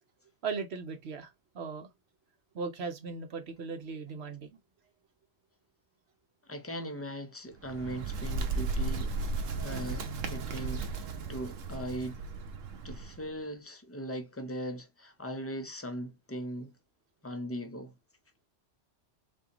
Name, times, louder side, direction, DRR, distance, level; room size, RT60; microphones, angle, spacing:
voice 1, 0.4-1.9 2.5-4.6, right 5 dB, 60° right, 1.0 m, -38 dB
voice 2, 6.4-9.2 9.6-12.2 12.8-16.8 17.2-18.0, right 1 dB, 15° left, 0.6 m, -39 dB
Bird, 7.5-13.3, right 3 dB, 85° right, 1.1 m, -35 dB
4.1 x 3.8 x 2.9 m
omnidirectional pair, 1.3 m